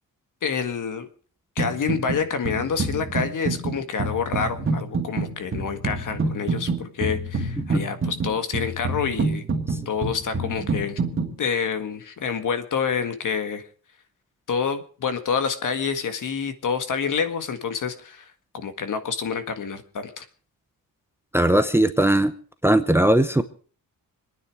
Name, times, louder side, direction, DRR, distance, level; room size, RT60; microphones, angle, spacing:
voice 1, 0.4-1.1 1.5-9.4 9.8-11.0 11.4-13.6 14.5-20.3, left 6 dB, 60° left, 9 dB, 1.8 m, -27 dB
sound 1, 1.6-2.2 2.5-11.3, right 3 dB, 35° right, 2.6 m, -27 dB
voice 2, 21.3-22.3 22.6-23.4, right 1 dB, 5° right, 11 dB, 0.8 m, -19 dB
26.0 x 9.7 x 4.8 m, 0.42 s
wide cardioid pair, 160°, 36 cm